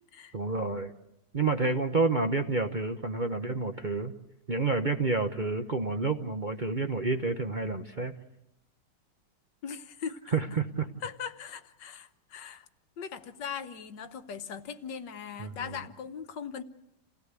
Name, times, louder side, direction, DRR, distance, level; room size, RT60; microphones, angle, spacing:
voice 1, 0.3-0.9 1.3-4.1 4.5-8.1 10.3-10.9 15.4-15.8, right 3 dB, 35° right, 5 dB, 0.8 m, -29 dB
voice 2, 9.6-10.2 11.0-12.7 13.0-16.6, left 7 dB, 75° left, 9 dB, 1.7 m, -40 dB
28.5 x 17.0 x 8.1 m, 0.86 s
omnidirectional pair, 1.9 m